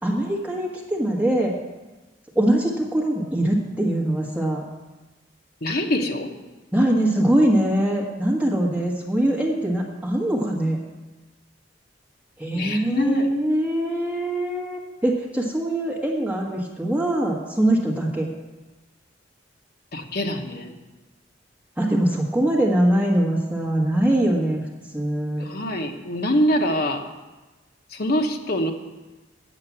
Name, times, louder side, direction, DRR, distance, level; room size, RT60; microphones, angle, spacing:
voice 1, 0.0-1.5 2.3-4.6 6.7-10.8 12.4-18.3 21.8-24.6 24.9-25.4, right 1 dB, 10° right, -1 dB, 1.4 m, -22 dB
voice 2, 5.6-6.3 12.5-13.3 19.9-20.7 25.4-27.1 27.9-28.7, equal, 50° left, 3 dB, 1.1 m, -24 dB
7.8 x 7.3 x 8.3 m, 1.2 s
head